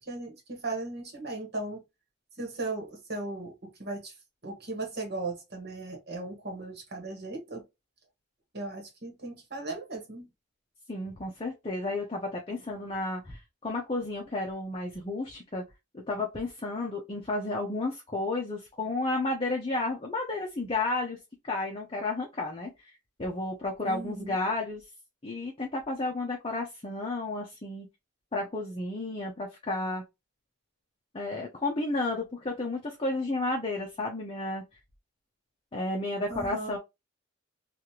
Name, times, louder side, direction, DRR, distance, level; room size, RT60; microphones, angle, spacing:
voice 1, 0.0-1.8 2.4-4.1 4.4-7.6 8.5-10.3 23.9-24.4 36.3-36.8, right 2 dB, 50° right, 1.3 m, -37 dB
voice 2, 10.9-15.6 15.9-21.2 21.4-22.9 23.2-24.8 25.2-27.9 28.3-30.0 31.1-34.6 35.7-36.8, left 2 dB, 25° left, 0.6 m, -32 dB
3.2 x 2.4 x 2.8 m
head